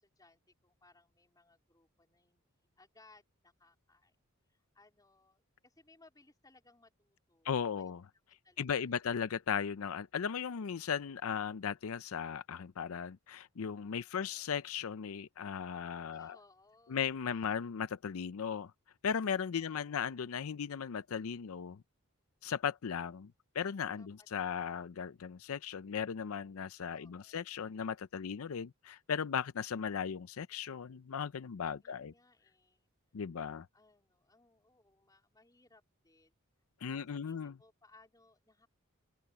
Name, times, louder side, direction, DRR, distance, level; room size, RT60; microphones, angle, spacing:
voice 1, 0.0-4.2 4.5-7.9 8.3-9.0 14.0-14.5 16.1-17.2 19.5-20.3 24.0-24.8 26.9-27.5 31.8-32.9 33.7-36.4 36.9-38.7, left 2 dB, 20° left, 3.9 m, -66 dB
voice 2, 7.4-8.0 8.6-16.4 16.9-18.7 19.0-21.8 22.4-32.1 33.1-33.7 36.8-37.5, left 7 dB, 80° left, 0.5 m, -37 dB
open air
head